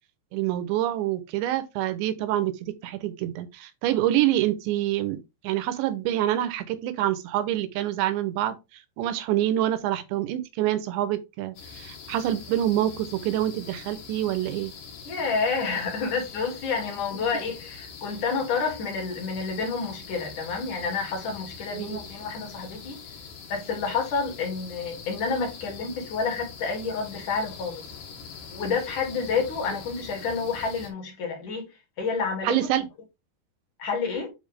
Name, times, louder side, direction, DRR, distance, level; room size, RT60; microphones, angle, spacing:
voice 1, 0.3-5.2 5.4-8.6 9.0-14.7 21.7-22.0 32.4-32.9, right 13 dB, 80° right, 3.0 m, -26 dB
sound 1, 11.6-30.9, left 6 dB, 75° left, 4.3 m, -43 dB
voice 2, 15.1-23.0 23.5-27.8 28.5-31.7 32.0-32.9 33.8-34.3, left 5 dB, 50° left, 3.5 m, -29 dB
9.5 x 4.1 x 3.4 m
omnidirectional pair, 5.3 m